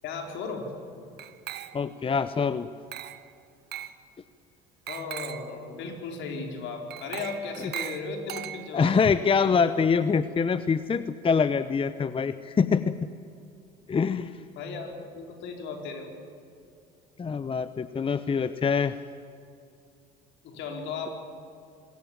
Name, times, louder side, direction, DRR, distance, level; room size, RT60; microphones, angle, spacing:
voice 1, 0.0-0.7 4.9-9.0 13.9-14.1 14.5-16.1 20.4-21.1, left 4 dB, 65° left, 3 dB, 4.9 m, -36 dB
Glass, 1.2-2.0 2.9-3.3 3.7-4.0 4.9-5.5 6.9-8.9, right 11 dB, 50° right, 1.4 m, -39 dB
voice 2, 1.7-2.7 7.6-7.7 8.7-13.0 13.9-14.4 17.2-19.0, left 5 dB, 25° left, 13 dB, 0.9 m, -25 dB
26.0 x 21.5 x 7.4 m, 2.5 s
hypercardioid pair, 70°, 21 cm